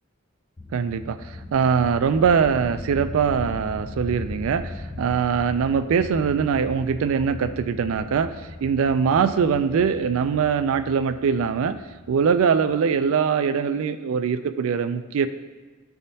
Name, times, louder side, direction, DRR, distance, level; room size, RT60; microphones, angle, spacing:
sound 1, 0.6-13.0, left 2 dB, 20° left, 0.4 m, -38 dB
voice 1, 0.7-8.3 8.6-11.8 12.1-15.3, right 6 dB, 75° right, 10 dB, 0.3 m, -22 dB
9.9 x 3.5 x 2.7 m, 1.3 s
head